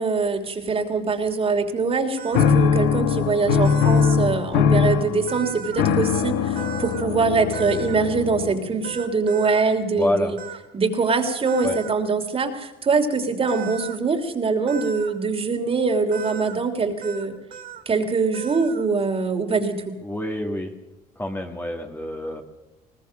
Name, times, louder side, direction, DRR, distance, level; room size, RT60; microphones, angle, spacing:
voice 1, 0.0-10.4 10.7-17.4 17.8-19.8, right 4 dB, 35° right, 5 dB, 3.1 m, -23 dB
sound 1, 2.2-2.5 3.6-4.2 5.3-5.8 6.5-7.1 7.5-8.0 8.8-9.6 10.4-10.6 11.4-11.9 13.5-14.0 14.7-15.1 16.1-16.6 17.0-17.2 17.5-17.8 18.3-18.8, right 6 dB, 55° right, 2.4 m, -36 dB
sound 2, 2.3-8.8, left 6 dB, 90° left, 1.4 m, -21 dB
voice 2, 10.0-10.4 11.6-11.8 20.0-20.7 21.2-22.4, left 1 dB, 10° left, 4 dB, 2.1 m, -27 dB
21.0 x 19.5 x 6.4 m, 1.0 s
cardioid pair, 110°, 17 cm